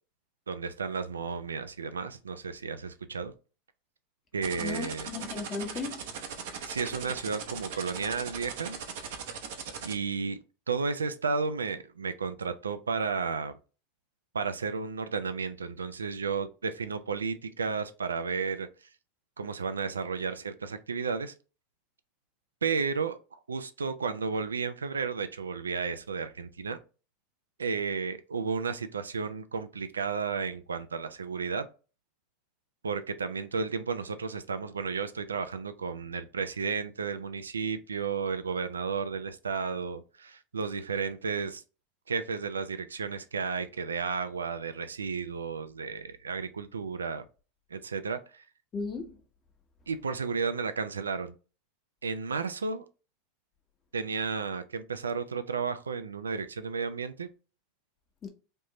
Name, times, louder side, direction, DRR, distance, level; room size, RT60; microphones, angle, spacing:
voice 1, 0.5-3.3 4.3-5.1 6.7-8.8 9.8-10.4 10.7-13.5 14.3-18.7 19.4-21.3 22.6-23.2 23.5-26.8 27.6-31.7 32.8-41.6 42.1-47.2 47.7-48.4 49.9-51.3 52.0-52.9 53.9-57.3, right 5 dB, 90° right, 0.3 m, -33 dB
sound 1, 4.4-9.9, right 7 dB, 70° right, 0.7 m, -38 dB
voice 2, 4.6-6.0 48.7-49.2 58.2-58.3, left 4 dB, 30° left, 0.9 m, -36 dB
3.5 x 2.6 x 2.9 m
hypercardioid pair, 90°, 0 cm